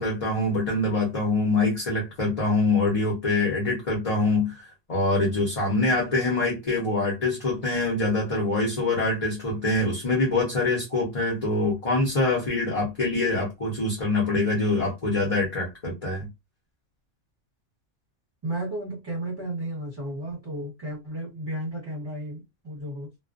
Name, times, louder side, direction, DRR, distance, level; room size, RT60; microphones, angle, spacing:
voice 1, 0.0-16.3, left 2 dB, 35° left, 0.9 m, -25 dB
voice 2, 18.4-23.1, right 1 dB, 20° right, 1.2 m, -33 dB
2.4 x 2.2 x 2.5 m
omnidirectional pair, 1.3 m